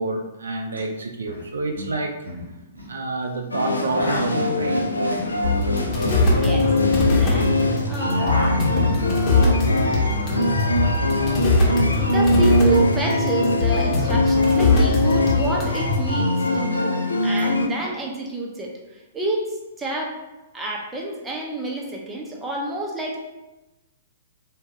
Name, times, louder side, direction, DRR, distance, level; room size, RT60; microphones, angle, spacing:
voice 1, 0.0-2.2 2.9-4.9, right 2 dB, 70° right, 4 dB, 0.3 m, -28 dB
sound 1, 0.7-0.8 1.1-1.4 1.7-2.9 3.6-7.6 7.9-10.1 10.4-11.4, equal, 90° right, 0.9 m, -33 dB
sound 2, 3.5-17.7, left 1 dB, 80° left, 0.4 m, -22 dB
sound 3, 5.4-16.1, left 3 dB, 30° left, 1.0 m, -22 dB
voice 2, 6.3-6.7 7.1-8.3 11.7-20.2 20.5-23.2, right 2 dB, 15° right, -2 dB, 0.6 m, -29 dB
3.5 x 2.3 x 3.1 m, 1.0 s
figure-of-eight pair, 110°, 0 cm